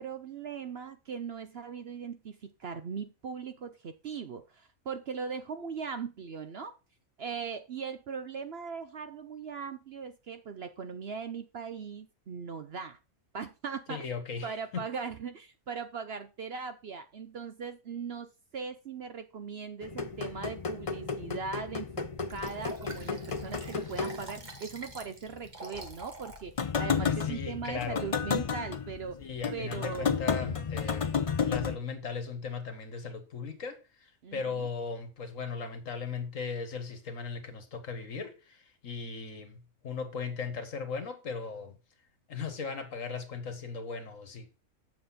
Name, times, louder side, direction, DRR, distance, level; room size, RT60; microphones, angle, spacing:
voice 1, 0.0-6.7 7.2-13.0 13.3-14.1 14.4-29.2 29.5-30.3 34.2-34.7, right 6 dB, 55° right, 0.8 m, -39 dB
voice 2, 13.9-14.9 27.0-28.1 29.2-41.8 42.3-44.5, left 5 dB, 65° left, 1.8 m, -38 dB
sound 1, 19.8-25.0 25.3-25.5 25.7-31.8, left 6 dB, 45° left, 0.4 m, -33 dB
Liquid, 22.3-26.5 26.9-27.0, right 2 dB, 30° right, 1.5 m, -46 dB
7.9 x 6.9 x 4.1 m
omnidirectional pair, 1.5 m